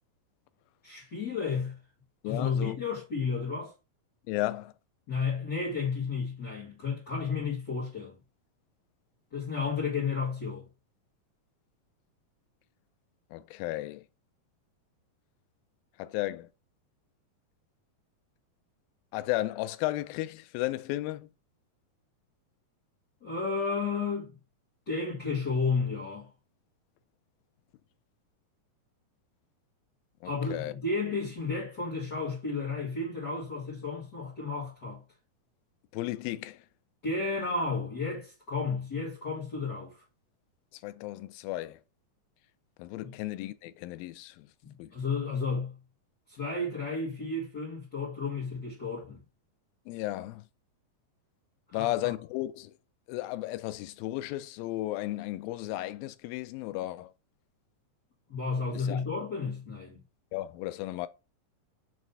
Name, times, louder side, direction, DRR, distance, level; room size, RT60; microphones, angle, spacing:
voice 1, 0.8-1.8 2.2-3.7 5.1-8.2 9.3-10.6 23.2-24.3 24.9-26.3 30.2-35.0 37.0-40.0 43.0-43.1 44.6-45.7 46.3-49.2 51.7-52.1 58.3-60.0, left 4 dB, 40° left, 1.9 m, -32 dB
voice 2, 2.2-2.8 4.3-4.7 13.3-14.0 16.0-16.5 19.1-21.3 30.2-30.7 35.9-36.6 40.8-41.8 42.8-44.5 44.8-44.9 49.9-50.4 51.7-52.7 53.1-57.1 58.7-59.0 60.3-61.1, left 16 dB, 90° left, 2.3 m, -34 dB
6.2 x 3.2 x 5.4 m
omnidirectional pair, 4.0 m